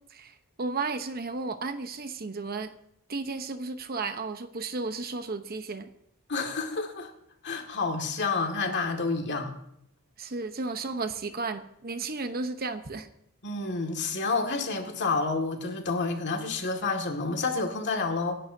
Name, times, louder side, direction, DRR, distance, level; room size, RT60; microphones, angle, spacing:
voice 1, 0.1-2.7 3.1-5.9 10.2-13.1, right 3 dB, 45° right, 9 dB, 0.9 m, -33 dB
voice 2, 6.3-7.1 7.4-9.5 13.4-18.4, left 3 dB, 55° left, 3 dB, 2.1 m, -29 dB
25.5 x 11.0 x 2.8 m, 0.76 s
head